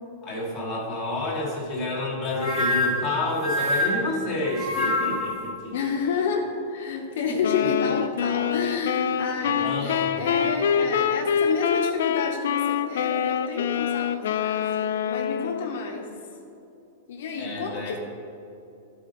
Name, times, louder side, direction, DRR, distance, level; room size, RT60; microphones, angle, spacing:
voice 1, 0.2-5.7 7.2-7.4 9.4-10.1 10.5-10.6 17.4-18.0, left 2 dB, 10° left, -6 dB, 1.2 m, -29 dB
sound 1, 2.3-5.4, left 1 dB, 5° right, 0.9 m, -26 dB
voice 2, 5.7-16.1 17.1-18.0, left 5 dB, 60° left, 1 dB, 0.7 m, -30 dB
sound 2, 7.4-15.8, left 8 dB, 75° left, 0.3 m, -25 dB
12.0 x 4.2 x 3.8 m, 2.8 s
supercardioid pair, 180°, 0 cm